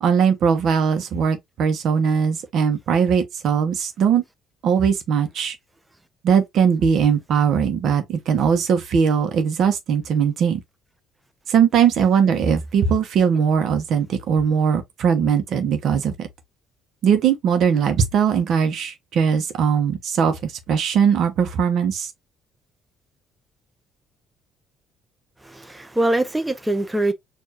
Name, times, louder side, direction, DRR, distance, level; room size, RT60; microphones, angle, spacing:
voice 1, 0.0-4.2 4.6-5.6 6.2-10.6 11.5-16.3 17.0-22.1, right 7 dB, 65° right, 1.1 m, -20 dB
voice 2, 25.4-27.1, right 1 dB, 10° right, 0.7 m, -23 dB
4.5 x 2.8 x 2.9 m
supercardioid pair, 80°, 0 cm